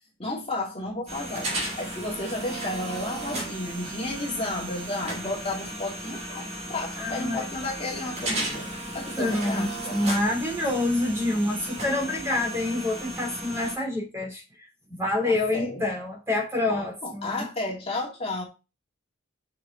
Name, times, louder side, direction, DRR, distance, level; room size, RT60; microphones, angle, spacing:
voice 1, 0.2-8.7 8.9-10.0 15.3-15.8 16.7-18.4, left 2 dB, 30° left, -2 dB, 2.3 m, -33 dB
sound 1, 1.1-13.8, right 1 dB, 35° right, 3.1 m, -35 dB
voice 2, 7.0-7.5 9.2-14.4 14.9-17.5, left 2 dB, 15° right, 0 dB, 3.2 m, -27 dB
6.9 x 6.4 x 3.9 m, 0.28 s
head